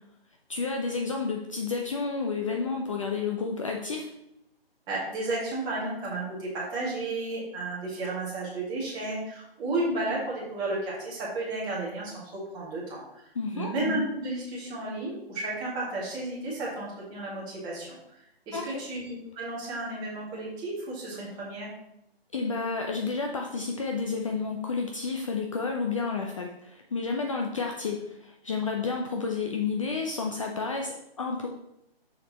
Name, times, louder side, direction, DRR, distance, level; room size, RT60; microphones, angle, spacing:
voice 1, 0.5-4.1 13.3-13.7 18.5-18.8 22.3-31.5, left 4 dB, 30° left, 2 dB, 0.6 m, -31 dB
voice 2, 4.9-13.2 13.5-18.2 18.5-21.7, right 2 dB, 15° right, -6 dB, 2.1 m, -33 dB
6.6 x 5.4 x 4.2 m, 0.83 s
figure-of-eight pair, 150°, 31 cm